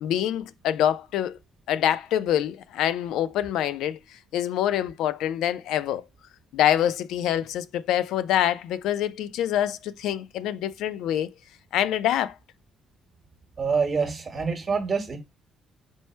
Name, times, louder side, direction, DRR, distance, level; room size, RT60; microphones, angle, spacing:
voice 1, 0.0-1.4 1.7-4.0 4.3-6.0 6.5-11.3 11.7-12.3, left 11 dB, 90° left, 0.3 m, -25 dB
voice 2, 13.6-15.2, right 5 dB, 30° right, 1.1 m, -26 dB
4.4 x 2.1 x 4.3 m
cardioid pair, 155°, 0 cm